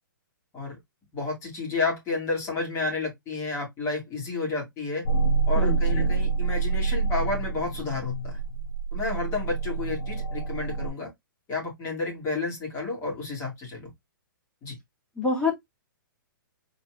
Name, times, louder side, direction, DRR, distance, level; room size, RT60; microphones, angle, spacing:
voice 1, 1.1-5.1 5.5-8.4 8.9-11.1 11.5-13.9 14.6-14.7, left 3 dB, 25° left, 2.7 m, -31 dB
sound 1, 5.0-10.9, right 5 dB, 70° left, 1.0 m, -27 dB
voice 2, 5.5-6.1 15.2-15.6, left 3 dB, 5° left, 2.5 m, -27 dB
4.4 x 4.0 x 2.5 m
hypercardioid pair, 135°, 12 cm